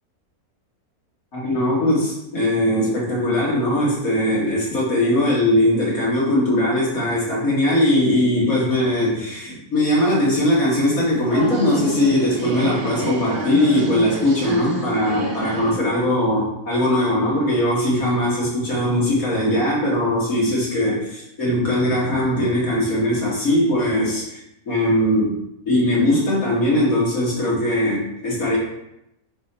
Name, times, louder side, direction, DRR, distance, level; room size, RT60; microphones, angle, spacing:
voice 1, 1.3-24.4 24.7-25.4 25.7-28.6, left 1 dB, 70° left, -6 dB, 2.7 m, -20 dB
sound 1, 9.9-15.8, right 2 dB, 45° right, 1.0 m, -30 dB
6.6 x 4.4 x 4.3 m, 0.84 s
omnidirectional pair, 1.6 m